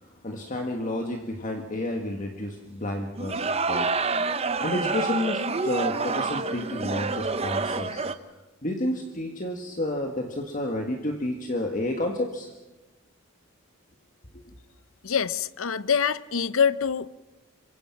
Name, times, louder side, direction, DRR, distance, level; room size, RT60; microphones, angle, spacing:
voice 1, 0.0-3.9 4.6-8.0 8.6-12.5, left 1 dB, 40° left, 1.7 m, -30 dB
sound 1, 3.1-8.1, right 4 dB, 30° right, 0.8 m, -28 dB
voice 2, 15.0-17.2, left 7 dB, 75° left, 0.7 m, -25 dB
27.0 x 24.0 x 5.9 m
head